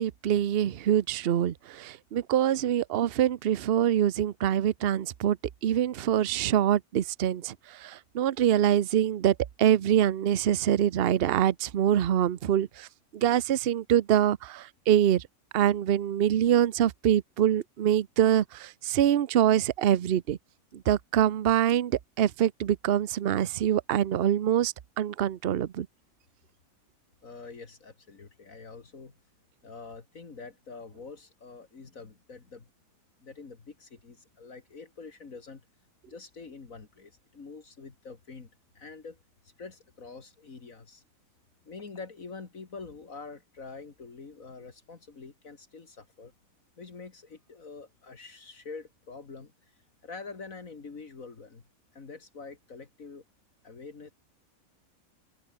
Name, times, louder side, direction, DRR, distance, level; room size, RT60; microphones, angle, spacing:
voice 1, 0.0-5.4 5.6-12.9 13.1-15.2 15.5-20.4 20.9-25.9, right 10 dB, 50° right, 0.8 m, -25 dB
voice 2, 27.2-29.1 29.6-32.7 33.2-35.6 36.1-38.5 38.7-41.0 41.6-46.3 46.8-49.8 50.0-51.6 51.9-53.2 53.6-54.1, left 4 dB, 70° left, 2.7 m, -45 dB
omnidirectional pair, 1.5 m